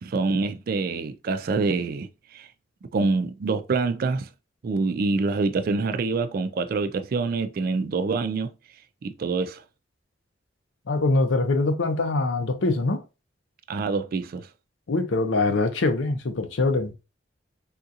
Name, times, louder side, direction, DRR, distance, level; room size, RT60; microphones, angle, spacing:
voice 1, 0.0-2.5 2.9-4.3 4.6-8.5 9.0-9.6 13.7-14.5, right 4 dB, 50° right, 0.3 m, -26 dB
voice 2, 10.9-13.0 14.9-16.9, left 2 dB, 90° left, 0.6 m, -23 dB
3.6 x 2.4 x 2.7 m
head